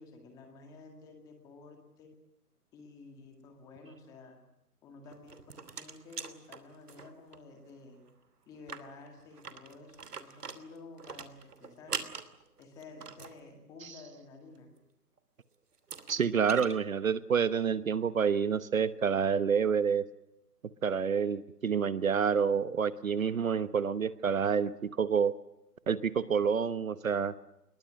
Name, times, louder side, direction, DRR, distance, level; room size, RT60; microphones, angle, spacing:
voice 1, 0.0-2.1 2.7-4.4 4.8-8.0 8.5-12.1 12.6-14.7, left 3 dB, 10° left, 4 dB, 2.0 m, -52 dB
sound 1, 5.1-7.4 7.7-7.8 8.1-8.2 8.5-13.4 15.2-15.3 15.7-16.8, right 5 dB, 75° right, 3.0 m, -43 dB
voice 2, 16.1-20.0 20.8-24.7 25.0-25.3 25.9-27.3, right 6 dB, 60° right, 15 dB, 1.2 m, -28 dB
23.5 x 21.5 x 7.8 m, 0.83 s
hypercardioid pair, 170°, 46 cm